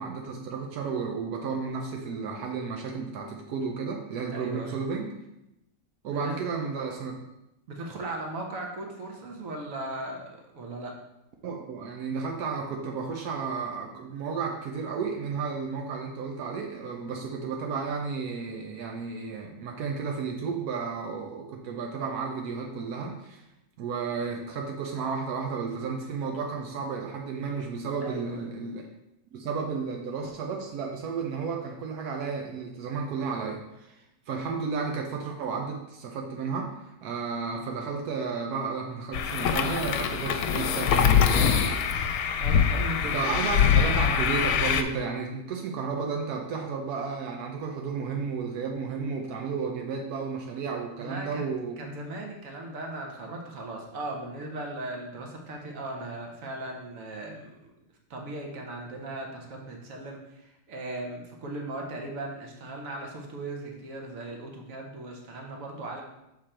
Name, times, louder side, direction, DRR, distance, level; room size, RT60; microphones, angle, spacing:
voice 1, 0.0-5.1 6.0-7.2 7.8-7.9 11.4-23.4 23.8-28.9 29.3-42.1 43.0-51.8, right 5 dB, 85° right, 1 dB, 1.2 m, -33 dB
voice 2, 4.3-4.8 6.1-6.3 7.7-10.9 28.0-28.5 42.4-43.5 51.0-57.5 58.1-66.0, right 2 dB, 65° right, 1 dB, 1.4 m, -38 dB
sound 1, 39.1-44.8, left 7 dB, 80° left, 1.0 m, -23 dB
6.5 x 3.8 x 4.3 m, 0.89 s
omnidirectional pair, 1.6 m